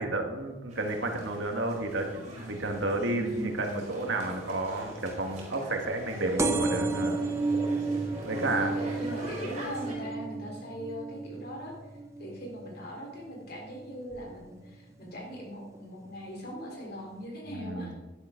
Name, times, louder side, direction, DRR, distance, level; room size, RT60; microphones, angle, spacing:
voice 1, 0.0-7.2 8.2-8.7 17.5-18.0, right 2 dB, 70° right, 3 dB, 1.6 m, -31 dB
sound 1, 0.7-9.9, right 1 dB, 40° right, 4.6 m, -41 dB
voice 2, 3.1-3.6 8.3-11.7 12.2-17.9, equal, 55° left, 0 dB, 3.6 m, -40 dB
sound 2, 6.4-13.6 14.1-14.6 15.4-15.5 15.7-15.8 16.1-16.2, right 3 dB, 15° right, 0.7 m, -32 dB
12.5 x 11.0 x 3.7 m, 1.1 s
head